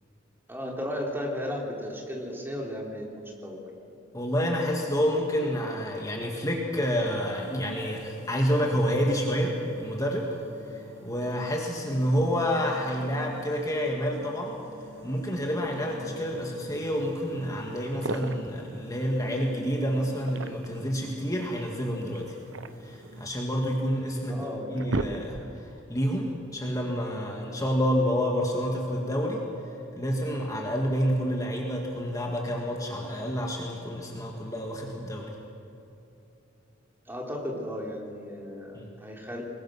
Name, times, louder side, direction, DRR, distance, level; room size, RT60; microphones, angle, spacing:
voice 1, 0.5-3.7 24.3-24.8 37.1-39.4, left 1 dB, 10° right, 0 dB, 3.3 m, -35 dB
voice 2, 4.1-10.3 10.7-14.6 15.0-22.3 22.8-24.4 24.7-29.5 29.9-35.3 38.7-38.9, equal, 20° left, -1 dB, 2.1 m, -28 dB
sound 1, 7.1-23.3, equal, 70° right, 2.3 m, -50 dB
sound 2, 17.8-18.6 20.0-20.9 22.1-23.5 24.1-24.2 24.6-25.7, right 2 dB, 90° right, 1.0 m, -35 dB
25.0 x 21.0 x 6.3 m, 2.9 s
head